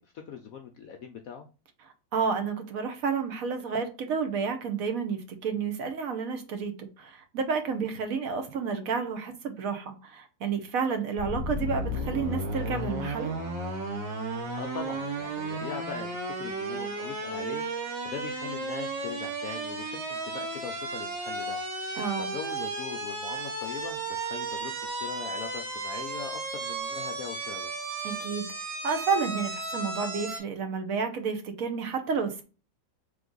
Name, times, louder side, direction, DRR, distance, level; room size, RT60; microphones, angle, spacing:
voice 1, 0.0-1.5 14.6-27.8, left 7 dB, 70° left, 0.8 m, -41 dB
voice 2, 2.1-13.3 22.0-22.3 28.0-28.5 28.8-32.4, right 5 dB, 60° right, 1.1 m, -30 dB
sound 1, 11.2-30.4, right 2 dB, 80° right, 2.2 m, -34 dB
3.6 x 3.4 x 3.8 m
omnidirectional pair, 1.9 m